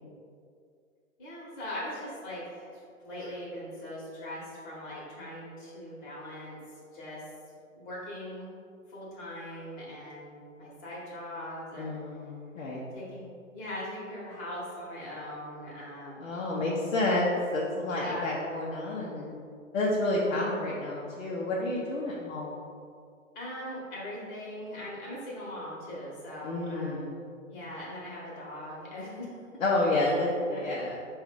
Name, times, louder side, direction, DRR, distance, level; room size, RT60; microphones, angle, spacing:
voice 1, 1.2-6.6 6.9-7.2 7.8-8.5 8.9-12.0 12.9-16.3 17.9-18.3 23.3-27.2 27.5-29.4 30.0-30.7, left 1 dB, 35° left, -5 dB, 1.2 m, -40 dB
voice 2, 11.8-12.8 16.2-19.3 19.7-22.6 26.4-27.1 29.6-31.1, left 2 dB, 60° left, -5 dB, 0.9 m, -30 dB
4.7 x 2.6 x 3.8 m, 2.3 s
figure-of-eight pair, 115°, 41 cm